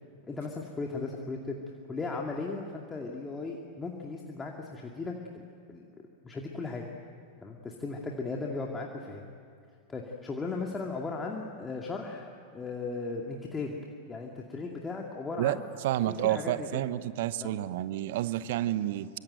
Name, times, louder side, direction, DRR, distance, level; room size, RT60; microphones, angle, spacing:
voice 1, 0.2-1.6 1.9-5.1 5.7-5.8 6.2-6.8 7.4-9.3 9.9-13.7 14.1-15.6 16.1-16.8 17.4-17.5, left 3 dB, 15° left, 0 dB, 2.3 m, -36 dB
voice 2, 15.8-19.1, right 13 dB, 55° right, 15 dB, 0.9 m, -29 dB
26.0 x 24.5 x 9.2 m, 2.3 s
figure-of-eight pair, 90°, 0 cm